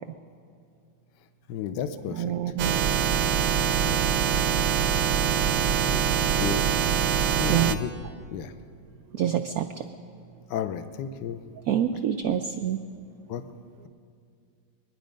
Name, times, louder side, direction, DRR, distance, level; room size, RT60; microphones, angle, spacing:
voice 1, 1.5-2.3 3.5-4.2 5.8-6.7 7.4-7.9 8.3-8.5 10.5-11.4 13.3-13.4, left 8 dB, 70° left, 10 dB, 1.3 m, -33 dB
voice 2, 2.1-3.0 7.5-7.7 9.1-9.9 11.7-12.8, right 9 dB, 85° right, 7 dB, 0.8 m, -27 dB
sound 1, 2.6-7.8, right 8 dB, 70° right, 1.1 m, -24 dB
23.0 x 10.0 x 5.2 m, 2.3 s
omnidirectional pair, 2.1 m